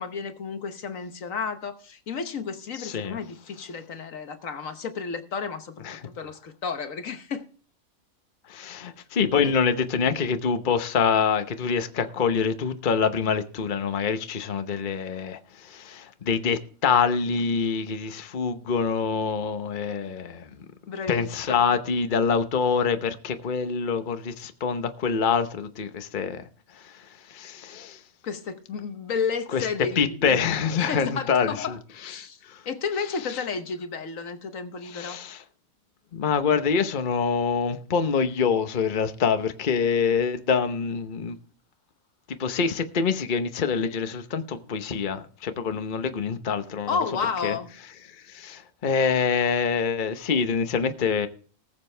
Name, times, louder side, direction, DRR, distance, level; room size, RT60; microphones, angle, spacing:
voice 1, 0.0-7.4 20.9-21.7 28.2-30.4 30.8-35.2 46.9-47.7, left 5 dB, 65° left, 1.4 m, -32 dB
voice 2, 2.8-3.2 5.8-6.1 8.5-20.6 21.1-28.0 29.5-29.7 30.0-31.8 32.0-32.6 33.3-33.4 34.8-35.4 36.1-41.4 42.4-47.0 47.4-47.6 48.1-51.3, left 6 dB, 40° left, 1.0 m, -26 dB
19.5 x 7.5 x 3.3 m
omnidirectional pair, 1.5 m